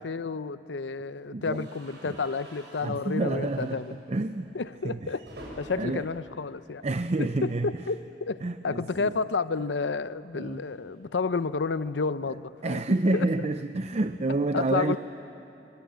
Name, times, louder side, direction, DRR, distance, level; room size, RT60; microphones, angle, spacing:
voice 1, 0.0-4.0 4.5-5.2 5.6-6.8 7.2-12.8 13.1-13.3 14.5-15.0, left 4 dB, 75° left, 15 dB, 0.6 m, -31 dB
voice 2, 1.3-1.7 2.0-2.2 2.8-4.6 4.8-5.1 5.8-6.1 6.8-7.8 8.4-9.1 10.3-10.6 12.6-15.0, right 2 dB, 40° right, 10 dB, 0.5 m, -29 dB
sound 1, 1.4-7.4 7.7-7.9 8.2-8.3 9.6-11.9, right 1 dB, 70° right, 7.2 m, -50 dB
26.5 x 25.0 x 8.1 m, 3.0 s
head